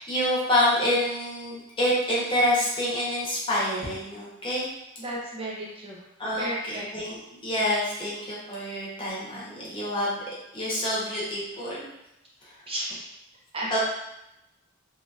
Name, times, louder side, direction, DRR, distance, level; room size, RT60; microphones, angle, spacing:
voice 1, 0.0-4.6 6.2-7.2 7.4-10.2 10.5-11.9 12.4-12.5 13.7-13.8, left 1 dB, 25° left, -7 dB, 0.8 m, -27 dB
voice 2, 5.0-6.0 6.4-6.8 12.7-13.1 13.5-13.8, right 1 dB, 25° right, -5 dB, 0.5 m, -33 dB
3.0 x 2.7 x 2.4 m, 0.88 s
head